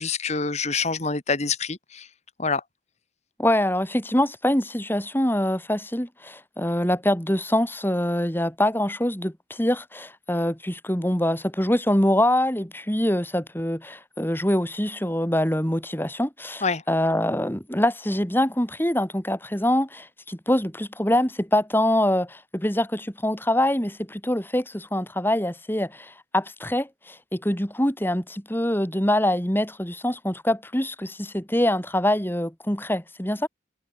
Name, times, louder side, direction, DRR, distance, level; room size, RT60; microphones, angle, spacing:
voice 1, 0.0-2.1 2.4-2.6 16.6-16.8, left 4 dB, 35° left, 1.9 m, -26 dB
voice 2, 3.4-33.5, left 1 dB, 10° left, 3.7 m, -24 dB
head